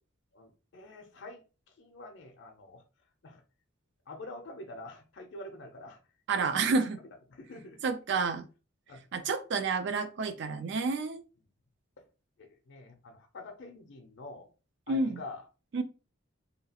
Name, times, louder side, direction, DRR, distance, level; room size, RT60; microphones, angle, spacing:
voice 1, 0.3-1.4 1.8-2.8 3.2-3.4 4.1-6.0 6.4-7.8 8.9-9.0 12.0-12.1 12.4-14.5 14.9-15.5, left 2 dB, 60° left, 0.5 m, -46 dB
voice 2, 6.3-7.0 7.8-8.4 9.1-11.2 14.9-15.2 15.7-15.8, right 4 dB, 60° right, 0.4 m, -29 dB
2.8 x 2.3 x 2.8 m
head